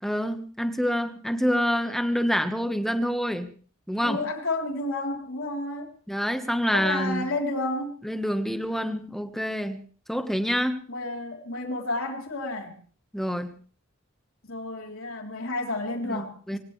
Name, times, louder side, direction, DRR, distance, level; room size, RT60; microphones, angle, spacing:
voice 1, 0.0-3.5 3.9-4.2 6.1-7.2 8.0-9.8 10.1-10.8 13.1-13.5 16.0-16.6, equal, ahead, 7 dB, 1.3 m, -27 dB
voice 2, 4.0-5.9 6.7-7.9 10.9-12.8 14.5-16.6, left 2 dB, 80° left, 1 dB, 3.7 m, -31 dB
23.5 x 17.5 x 3.3 m, 0.43 s
head